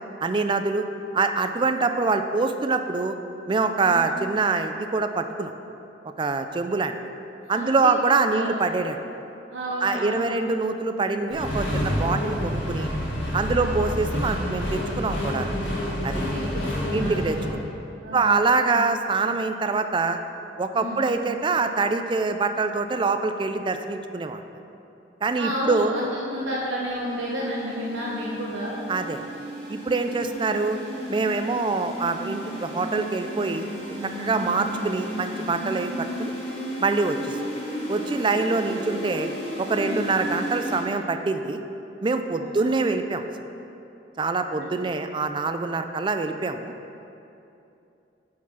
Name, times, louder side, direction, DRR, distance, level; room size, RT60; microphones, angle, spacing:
voice 1, 0.2-0.8 1.1-3.2 3.5-5.5 6.2-7.0 7.5-9.0 9.8-12.9 13.3-15.5 16.0-16.2 16.9-17.4 18.1-20.2 20.6-24.4 25.2-25.9 28.9-29.2 29.7-30.8 31.1-33.7 34.2-36.3 36.8-37.4 37.9-39.3 39.6-41.6 42.0-43.2 44.2-46.7, right 3 dB, 25° right, 8 dB, 0.4 m, -25 dB
voice 2, 7.5-7.9 8.3-8.5 9.5-10.4 13.5-13.8 16.1-17.3 18.0-18.6 20.7-21.0 25.4-28.7 30.2-30.3 34.3-34.6 39.8-40.1 42.4-42.9 44.6-44.7, equal, 80° right, -4 dB, 0.9 m, -32 dB
Accelerating revving vroom, 11.3-17.5, equal, 85° left, 1.8 m, -28 dB
sound 1, 26.5-40.8, equal, 30° left, 1.8 m, -34 dB
9.3 x 4.6 x 5.6 m, 2.7 s
head